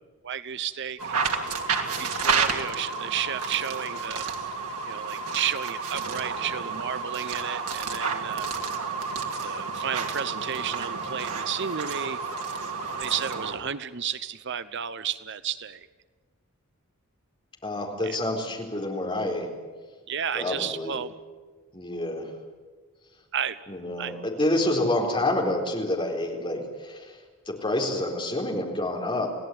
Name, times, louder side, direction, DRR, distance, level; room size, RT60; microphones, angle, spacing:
voice 1, 0.2-1.2 2.0-4.3 4.9-8.5 9.4-12.2 13.0-15.9 18.0-18.2 20.1-21.1 23.3-23.6 24.0-24.1, right 8 dB, 55° right, 14 dB, 0.7 m, -32 dB
sound 1, 1.0-13.6, right 5 dB, 90° right, 2.7 m, -30 dB
voice 2, 17.6-19.5 20.3-21.0 21.7-22.3 23.7-27.2 27.5-29.3, left 1 dB, 25° left, 1 dB, 4.3 m, -28 dB
29.0 x 17.0 x 9.5 m, 1.4 s
head